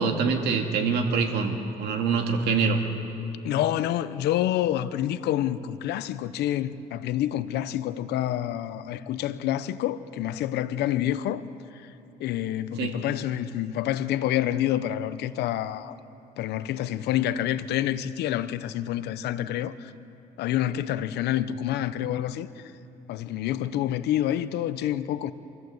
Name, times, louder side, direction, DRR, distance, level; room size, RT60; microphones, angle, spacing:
voice 1, 0.0-2.8 12.8-13.0, right 5 dB, 75° right, 2.3 m, -25 dB
voice 2, 3.4-11.4 12.2-16.0 16.4-19.9 20.4-22.5 23.1-25.3, left 12 dB, 80° left, 0.8 m, -28 dB
27.0 x 14.0 x 7.9 m
cardioid pair, 110°, 17 cm